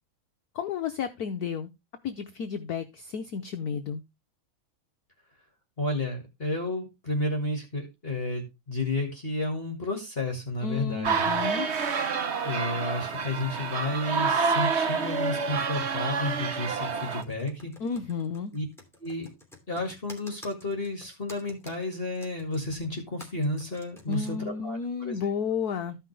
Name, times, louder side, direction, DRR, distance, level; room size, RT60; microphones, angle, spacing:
voice 1, 0.5-1.7 2.0-4.0 10.6-11.7 17.8-18.5 24.1-26.0, left 6 dB, 60° left, 8 dB, 1.1 m, -32 dB
voice 2, 5.8-11.4 12.4-17.7 18.5-18.7 19.0-19.3 19.7-25.2, left 2 dB, 30° left, 2 dB, 2.0 m, -32 dB
sound 1, 11.0-17.2, right 5 dB, 50° right, 0.8 m, -28 dB
Computer keyboard, 17.0-24.3, left 1 dB, ahead, 2.5 m, -50 dB
14.0 x 5.7 x 3.3 m, 0.24 s
omnidirectional pair, 2.2 m